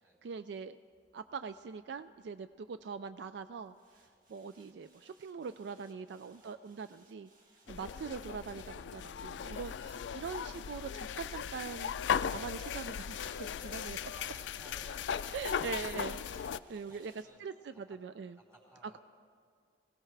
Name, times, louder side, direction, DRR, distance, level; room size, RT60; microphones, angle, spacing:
voice 1, 0.2-0.8 1.1-3.7 4.3-7.3 7.7-11.9 12.3-14.0 15.3-17.1 17.4-18.4, right 5 dB, 65° right, 12 dB, 0.3 m, -42 dB
sound 1, 0.9-10.4 11.1-17.2, right 3 dB, 45° right, 2.4 m, -62 dB
voice 2, 5.9-7.0 7.6-7.8 13.6-16.1 16.6-17.8 18.3-19.0, equal, 15° right, -5 dB, 4.4 m, -62 dB
sound 2, 7.7-16.6, left 7 dB, 75° left, 0.3 m, -38 dB
23.0 x 17.0 x 3.3 m, 2.1 s
head